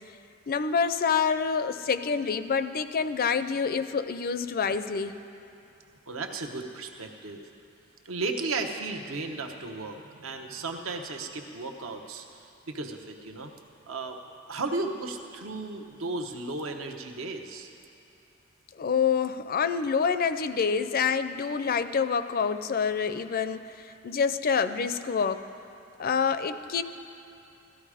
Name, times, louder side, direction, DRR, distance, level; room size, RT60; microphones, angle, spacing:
voice 1, 0.5-5.1 18.8-23.6 24.0-25.4 26.0-26.8, left 6 dB, 45° left, 11 dB, 0.5 m, -27 dB
voice 2, 6.1-7.4 8.0-12.3 12.7-13.5 13.9-14.2 14.5-17.7, right 3 dB, 70° right, 3 dB, 1.0 m, -34 dB
17.0 x 13.5 x 4.9 m, 2.8 s
head